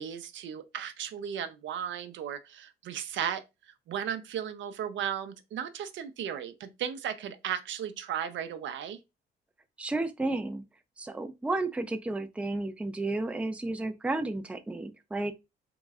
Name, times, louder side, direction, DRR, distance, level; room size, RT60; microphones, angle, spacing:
voice 1, 0.0-3.4 3.9-9.0, right 9 dB, 70° right, 0.5 m, -35 dB
voice 2, 9.8-10.6 11.0-15.3, right 2 dB, 5° right, 0.4 m, -32 dB
3.7 x 3.0 x 2.4 m
cardioid pair, 90°, 20 cm